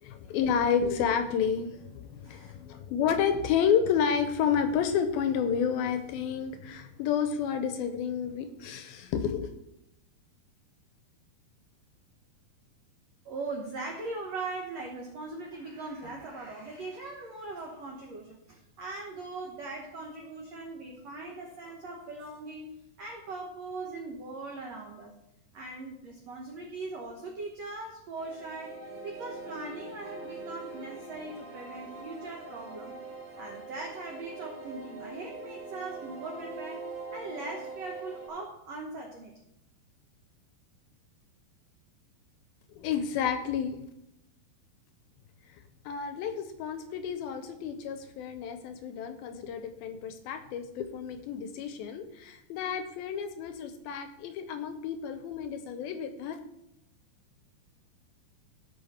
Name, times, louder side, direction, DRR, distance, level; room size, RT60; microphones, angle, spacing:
voice 1, 0.0-9.5 42.7-43.8 45.5-56.4, left 7 dB, 80° left, 8 dB, 2.3 m, -30 dB
voice 2, 13.2-25.1 25.5-33.0 33.4-39.4, right 3 dB, 80° right, 1 dB, 1.5 m, -40 dB
sound 1, 28.2-38.3, right 3 dB, 45° right, 3.9 m, -43 dB
16.0 x 5.7 x 4.2 m, 0.85 s
omnidirectional pair, 4.7 m